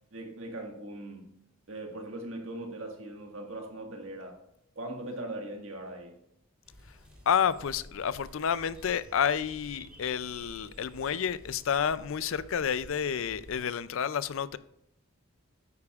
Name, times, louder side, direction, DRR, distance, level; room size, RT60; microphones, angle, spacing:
voice 1, 0.1-1.3 1.7-4.4 4.8-6.1, right 1 dB, 65° right, 1.7 m, -40 dB
sound 1, 6.6-13.6, equal, 5° right, 3.0 m, -52 dB
voice 2, 7.3-14.6, left 8 dB, 65° left, 0.4 m, -30 dB
9.6 x 8.3 x 2.4 m
head